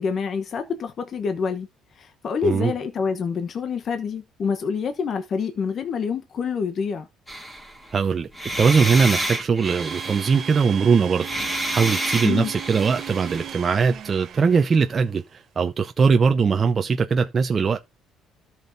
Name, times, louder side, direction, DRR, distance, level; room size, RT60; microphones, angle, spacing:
voice 1, 0.0-1.7 1.9-7.1 12.2-12.5, left 5 dB, 50° left, 1.1 m, -27 dB
sound 1, 7.3-7.9 8.3-10.7 11.2-13.5, right 1 dB, 10° left, 2.7 m, -29 dB
voice 2, 7.9-8.3 8.6-17.8, right 5 dB, 35° right, 0.7 m, -21 dB
Domestic sounds home sounds, 9.6-15.1, right 9 dB, 55° right, 1.3 m, -36 dB
13.0 x 6.0 x 2.7 m
cardioid pair, 100°, 0 cm